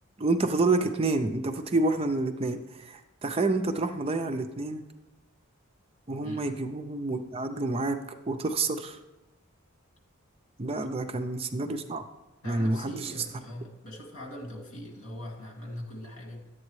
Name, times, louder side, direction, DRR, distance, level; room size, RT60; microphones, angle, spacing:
voice 1, 0.2-4.8 6.1-8.0 8.3-9.0 10.6-12.0 12.5-13.2, right 2 dB, 25° right, 8 dB, 0.4 m, -28 dB
voice 2, 6.2-6.6 10.8-10.9 12.4-16.5, left 1 dB, 85° left, 2 dB, 2.0 m, -41 dB
10.5 x 8.0 x 3.2 m, 1.0 s
head